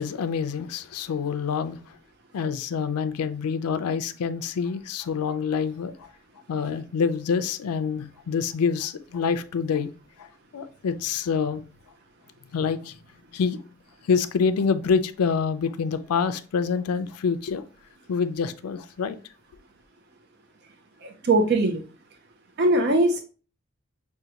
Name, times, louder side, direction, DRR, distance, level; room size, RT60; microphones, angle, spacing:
voice 1, 0.0-2.0 2.3-6.1 6.5-9.9 10.2-10.3 10.5-11.6 12.5-13.0 13.3-13.6 14.1-17.6 18.1-19.2, left 6 dB, 90° left, 0.4 m, -26 dB
voice 2, 21.0-21.8 22.6-23.2, right 2 dB, 45° right, 0.5 m, -21 dB
6.2 x 2.2 x 2.8 m
head